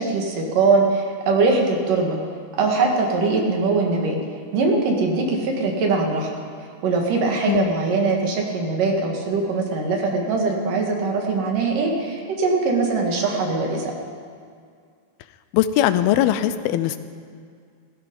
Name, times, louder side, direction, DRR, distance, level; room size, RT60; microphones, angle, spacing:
voice 1, 0.0-2.2 2.6-4.2 4.5-6.3 6.8-13.9, right 3 dB, 65° right, 1 dB, 3.3 m, -21 dB
voice 2, 15.5-17.0, left 12 dB, 90° left, 12 dB, 2.6 m, -20 dB
16.5 x 16.0 x 5.3 m, 2.2 s
omnidirectional pair, 4.3 m